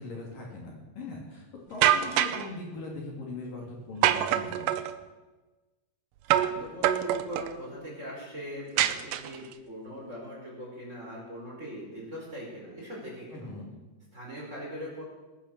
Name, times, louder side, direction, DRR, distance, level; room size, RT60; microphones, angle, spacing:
voice 1, 0.0-4.7 13.3-13.7, left 3 dB, 55° left, -1 dB, 4.1 m, -40 dB
sound 1, 1.8-2.5 4.0-4.9 6.3-6.6 6.8-7.5 8.8-9.5, right 12 dB, 85° right, 1.9 m, -25 dB
voice 2, 6.3-13.5 14.1-15.0, equal, 15° right, -4 dB, 5.1 m, -41 dB
19.5 x 10.0 x 7.3 m, 1.2 s
omnidirectional pair, 4.8 m